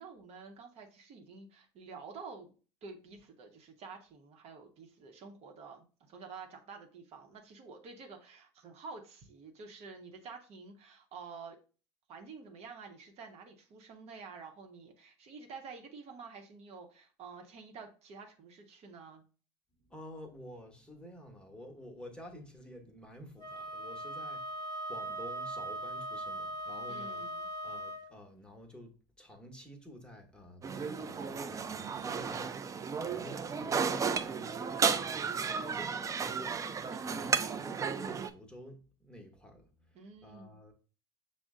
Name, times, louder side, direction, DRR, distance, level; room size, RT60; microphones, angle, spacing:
voice 1, 0.0-2.5 2.8-11.6 12.1-19.2 26.9-27.5 36.9-37.4 39.9-40.6, right 4 dB, 50° right, 0.9 m, -49 dB
voice 2, 19.8-27.2 27.6-36.6 37.0-40.7, equal, 5° left, 1.1 m, -51 dB
Wind instrument woodwind instrument, 23.4-28.1, right 1 dB, 30° left, 0.9 m, -40 dB
sound 1, 30.6-38.3, right 5 dB, 25° right, 0.4 m, -33 dB
6.1 x 2.1 x 3.6 m
hypercardioid pair, 75°, 14 cm